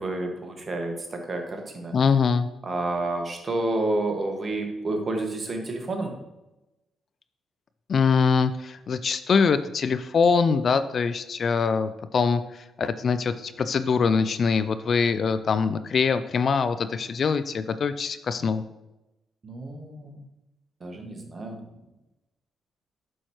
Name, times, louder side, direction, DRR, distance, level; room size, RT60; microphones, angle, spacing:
voice 1, 0.0-1.9 2.6-6.2 19.4-20.2 20.8-21.7, right 2 dB, 35° right, 3 dB, 1.7 m, -30 dB
voice 2, 1.9-2.5 7.9-18.6, left 5 dB, 50° left, 12 dB, 0.4 m, -23 dB
9.1 x 6.3 x 3.1 m, 0.98 s
hypercardioid pair, 45°, 0 cm